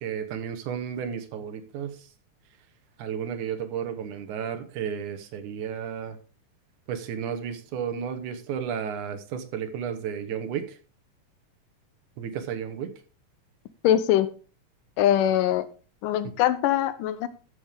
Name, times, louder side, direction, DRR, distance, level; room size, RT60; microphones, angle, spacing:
voice 1, 0.0-2.0 3.0-6.2 6.9-10.8 12.2-12.9, right 8 dB, 70° right, 8 dB, 2.4 m, -33 dB
voice 2, 13.8-14.3 15.0-15.7 16.0-17.3, left 11 dB, 80° left, 13 dB, 2.4 m, -22 dB
14.0 x 6.4 x 3.6 m, 0.37 s
omnidirectional pair, 3.8 m